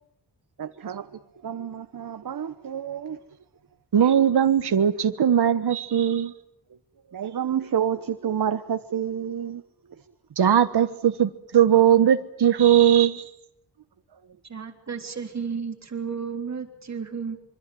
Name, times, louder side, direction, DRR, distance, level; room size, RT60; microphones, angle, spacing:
voice 1, 0.6-3.2 7.1-10.1, right 9 dB, 55° right, 1.1 m, -30 dB
voice 2, 3.9-6.3 10.4-13.2, right 9 dB, 75° right, 1.4 m, -19 dB
voice 3, 14.4-17.4, right 6 dB, 40° right, 3.5 m, -33 dB
26.0 x 25.0 x 7.8 m
wide cardioid pair, 165°, 40 cm